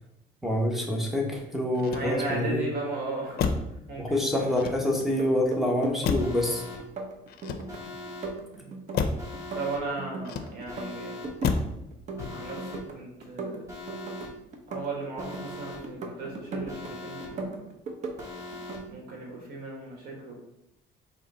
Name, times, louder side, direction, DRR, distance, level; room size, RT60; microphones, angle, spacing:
voice 1, 0.4-2.6 4.0-6.6, left 1 dB, ahead, 0 dB, 1.1 m, -26 dB
Motor vehicle (road), 1.7-2.5 3.3-3.8 4.5-5.2 6.0-6.5 7.3-8.0 8.9-9.3 10.2-10.8 11.4-11.8 12.2-12.6, left 5 dB, 65° left, 0.5 m, -31 dB
voice 2, 1.8-4.4 8.5-8.7 9.5-11.2 12.3-13.6 14.7-17.7 18.9-20.4, right 3 dB, 75° right, -1 dB, 1.6 m, -36 dB
sound 1, 5.0-6.5 6.8-7.8 8.1-10.4 10.6-11.6 11.9-13.0 13.2-15.5 15.8-16.9 17.2-18.3 18.5-18.9, right 3 dB, 45° right, 0.7 m, -37 dB
Alarm, 6.2-6.8 7.7-8.3 9.2-9.8 10.7-11.3 12.2-12.8 13.7-14.3 15.2-15.8 16.7-17.3 18.2-18.8, left 2 dB, 15° right, 1.5 m, -41 dB
3.7 x 3.3 x 4.2 m, 0.84 s
cardioid pair, 110°, 17 cm